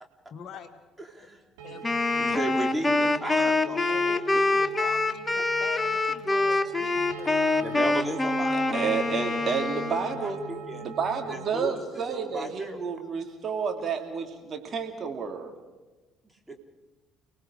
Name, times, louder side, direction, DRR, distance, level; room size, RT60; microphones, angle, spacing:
voice 1, 0.3-0.7 1.6-2.0 3.9-7.3, left 7 dB, 50° left, 8 dB, 1.5 m, -43 dB
voice 2, 1.0-1.4 1.7-1.8 2.2-3.9 4.2-4.4 4.8-4.9 6.5-6.6 7.5-9.6 9.9-10.9 11.3-12.8 16.5-16.6, right 1 dB, 10° right, 3 dB, 3.8 m, -36 dB
sound 1, 1.6-11.7, right 5 dB, 70° right, 2.2 m, -41 dB
Wind instrument woodwind instrument, 1.8-10.2, left 2 dB, 20° left, 1.2 m, -25 dB
voice 3, 8.7-10.4 10.8-15.5, right 6 dB, 40° right, 4 dB, 2.8 m, -30 dB
29.5 x 19.0 x 5.0 m, 1.2 s
figure-of-eight pair, 50°, 0 cm